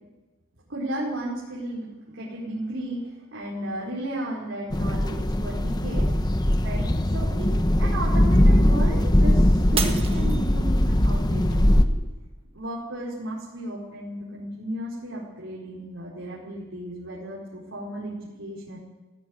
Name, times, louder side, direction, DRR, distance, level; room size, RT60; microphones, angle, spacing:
voice 1, 0.7-3.0 3.3-6.1 6.6-11.6 11.9-12.0 12.5-18.8, right 1 dB, 75° right, -5 dB, 5.1 m, -34 dB
sound 1, 4.7-11.8, left 1 dB, 20° left, 0.9 m, -20 dB
sound 2, 6.8-12.1, equal, 55° left, 1.9 m, -37 dB
Shatter, 9.8-11.0 11.6-12.0 12.6-12.7, right 6 dB, 30° right, 1.8 m, -31 dB
17.0 x 16.5 x 9.8 m, 1.2 s
head